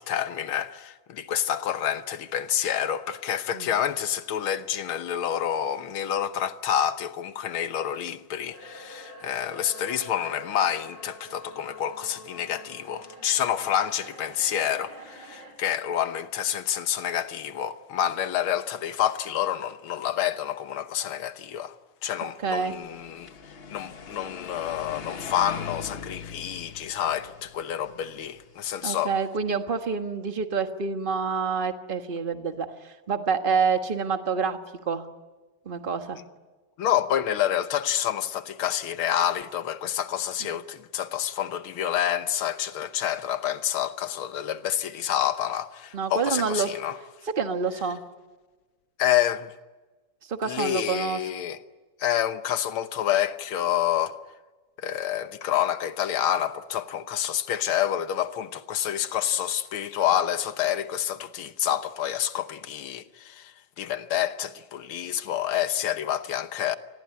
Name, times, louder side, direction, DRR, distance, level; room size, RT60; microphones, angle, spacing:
voice 1, 0.0-21.8 22.0-23.3 23.7-29.1 36.8-47.0 49.0-49.5 50.4-51.6 52.0-54.2 54.8-66.8, left 10 dB, 75° left, 1.9 m, -28 dB
sound 1, 8.5-15.5, equal, 55° right, 6.8 m, -46 dB
voice 2, 22.2-22.8 28.8-34.6 34.9-35.0 35.6-36.2 45.9-46.7 47.3-48.0 50.3-51.2, right 5 dB, 30° right, 1.4 m, -27 dB
sound 2, 22.7-28.9, left 6 dB, 40° left, 0.9 m, -41 dB
28.0 x 20.5 x 9.7 m
omnidirectional pair, 2.4 m